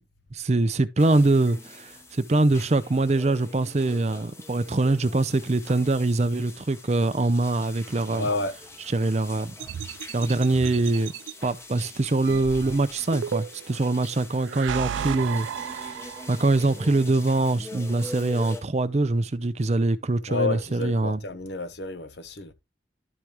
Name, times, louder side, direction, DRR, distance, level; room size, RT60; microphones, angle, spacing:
voice 1, 0.3-8.3 8.9-9.5 10.1-11.1 11.4-21.2, right 2 dB, 35° right, 0.5 m, -24 dB
sound 1, 1.0-18.6, left 2 dB, 15° left, 1.0 m, -44 dB
voice 2, 8.1-8.6 20.3-22.5, left 3 dB, 65° left, 0.9 m, -30 dB
sound 2, 9.6-11.3 12.3-13.8 14.4-16.6, right 9 dB, 90° right, 0.3 m, -34 dB
12.0 x 5.0 x 3.0 m
head